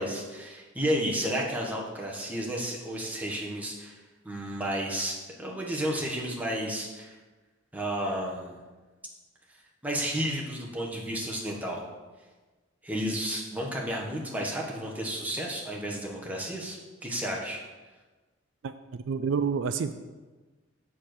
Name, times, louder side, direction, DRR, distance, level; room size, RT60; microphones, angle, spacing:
voice 1, 0.0-4.0 4.2-7.1 7.7-8.6 9.8-11.8 12.8-17.6, equal, 10° right, -3 dB, 1.2 m, -32 dB
voice 2, 18.6-19.9, right 6 dB, 75° right, 11 dB, 0.4 m, -29 dB
7.2 x 4.4 x 6.6 m, 1.3 s
head